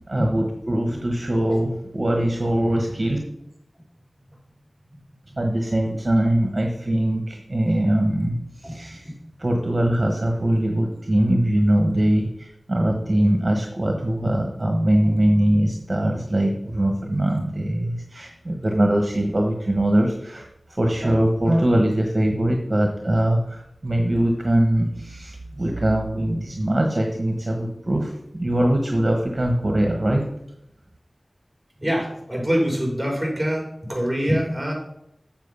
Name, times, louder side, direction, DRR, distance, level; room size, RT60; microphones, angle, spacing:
voice 1, 0.1-3.2 5.4-9.1 9.4-20.5 20.8-30.2, right 1 dB, 40° right, 2 dB, 1.3 m, -22 dB
voice 2, 31.8-34.7, equal, 5° right, -1 dB, 4.2 m, -25 dB
7.5 x 7.3 x 5.6 m, 0.78 s
wide cardioid pair, 55°, 0 cm